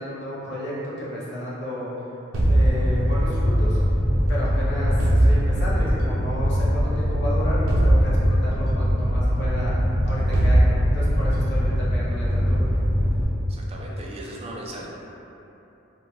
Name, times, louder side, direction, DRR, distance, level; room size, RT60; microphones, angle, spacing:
voice 1, 0.0-1.9 2.4-3.8 4.3-9.8 10.0-12.7, equal, 60° left, -7 dB, 0.7 m, -32 dB
sound 1, 2.3-3.5 5.0-5.9 7.7-8.8 10.3-11.3, right 1 dB, 90° right, 0.5 m, -21 dB
Fire, 2.4-13.2, equal, 30° left, 1.1 m, -22 dB
voice 2, 13.5-14.9, right 1 dB, 30° right, -2 dB, 0.3 m, -37 dB
2.7 x 2.2 x 3.0 m, 3.0 s
head